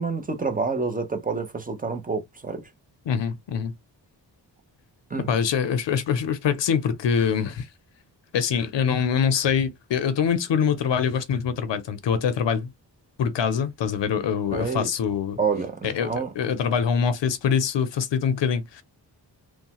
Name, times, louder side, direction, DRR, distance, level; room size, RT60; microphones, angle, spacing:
voice 1, 0.0-2.7 5.1-5.3 14.5-14.9 15.4-16.3, right 4 dB, 20° right, 0.5 m, -28 dB
voice 2, 3.1-3.7 5.3-7.7 8.3-12.7 13.2-15.4 15.8-18.8, left 7 dB, 80° left, 0.6 m, -24 dB
3.0 x 2.1 x 2.9 m
wide cardioid pair, 140°, 43 cm